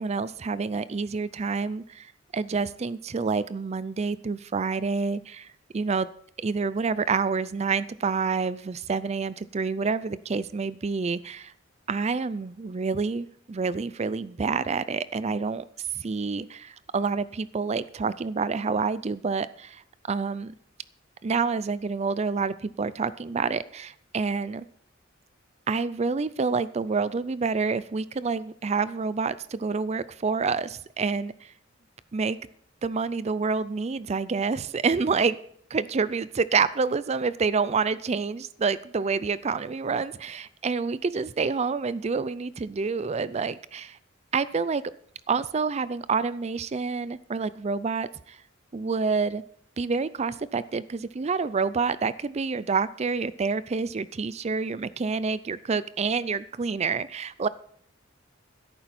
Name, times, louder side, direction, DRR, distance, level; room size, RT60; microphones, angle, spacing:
voice 1, 0.0-5.5 5.7-6.1 6.4-11.5 11.9-15.6 15.9-19.8 20.1-20.5 21.2-24.6 25.7-31.5 32.1-32.4 32.8-35.4 35.7-44.0 44.3-44.8 45.3-48.4 48.7-49.4 49.8-57.5, right 4 dB, 35° right, 17 dB, 0.4 m, -28 dB
13.0 x 11.0 x 4.2 m, 0.63 s
head